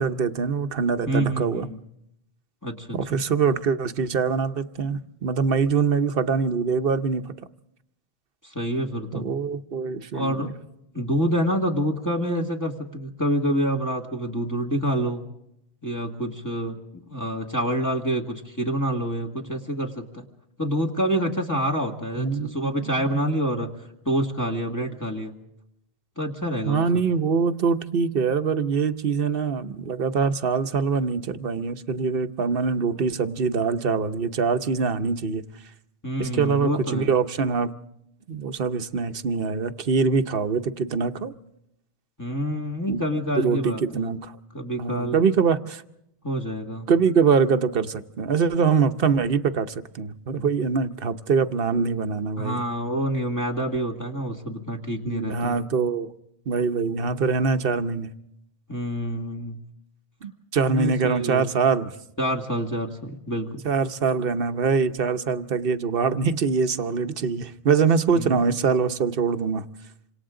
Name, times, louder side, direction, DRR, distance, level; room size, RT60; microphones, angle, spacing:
voice 1, 0.0-1.7 2.9-7.3 9.1-10.5 22.2-23.3 26.7-35.4 36.2-37.7 38.3-41.3 42.9-43.0 43.4-44.3 44.8-45.8 46.9-52.6 55.1-56.1 56.5-58.1 60.2-61.9 63.6-69.6, right 5 dB, 65° right, 10 dB, 1.1 m, -24 dB
voice 2, 1.1-1.8 2.6-3.2 8.4-9.3 10.1-10.5 10.9-15.3 15.8-16.8 17.1-20.3 20.6-23.7 24.1-25.3 26.2-26.9 36.0-37.1 42.2-44.1 44.5-45.2 46.2-46.9 52.4-55.6 58.7-59.6 60.7-61.5 62.2-63.6 68.1-68.5, equal, 15° left, 0 dB, 2.0 m, -27 dB
28.0 x 26.0 x 3.8 m, 0.80 s
omnidirectional pair, 1.1 m